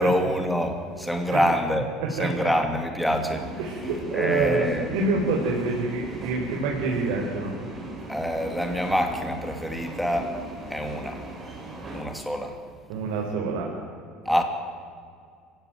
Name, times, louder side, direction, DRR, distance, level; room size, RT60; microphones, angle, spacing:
voice 1, 0.0-1.9 2.2-3.5 4.1-4.9 8.1-10.3 10.7-11.2 11.9-12.6 14.2-14.4, equal, ahead, 4 dB, 2.6 m, -25 dB
voice 2, 2.0-2.5 3.6-7.5 12.9-13.7, right 3 dB, 85° right, -1 dB, 4.9 m, -27 dB
sound 1, 3.0-12.0, right 1 dB, 15° right, 5.4 m, -37 dB
28.5 x 16.5 x 9.4 m, 2.2 s
cardioid pair, 160°, 0 cm